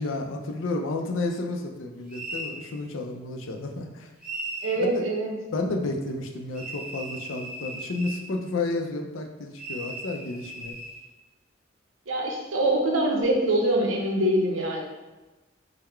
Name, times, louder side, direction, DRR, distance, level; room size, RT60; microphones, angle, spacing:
voice 1, 0.0-4.1 4.8-5.0 5.5-10.8, left 2 dB, 80° left, 3 dB, 0.5 m, -31 dB
sound 1, 2.1-2.6 4.2-4.8 6.5-8.2 9.6-11.0, right 1 dB, 5° right, 0.9 m, -37 dB
voice 2, 4.6-5.3 12.1-14.8, right 1 dB, 85° right, 0 dB, 0.7 m, -24 dB
3.8 x 2.1 x 4.3 m, 1.1 s
head